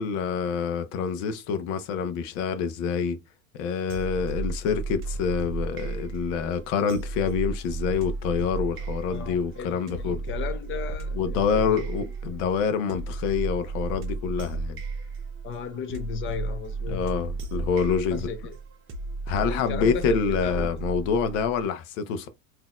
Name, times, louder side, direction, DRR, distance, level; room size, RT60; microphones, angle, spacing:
voice 1, 0.0-3.2 3.6-10.2 11.1-14.8 16.9-18.3 19.3-22.3, left 6 dB, 60° left, 0.9 m, -27 dB
sound 1, 3.9-21.6, right 3 dB, 30° right, 0.9 m, -33 dB
voice 2, 9.1-12.1 15.4-17.1 18.1-18.6 19.5-20.7, left 7 dB, 30° left, 0.7 m, -36 dB
3.9 x 2.9 x 2.4 m
supercardioid pair, 120°, 42 cm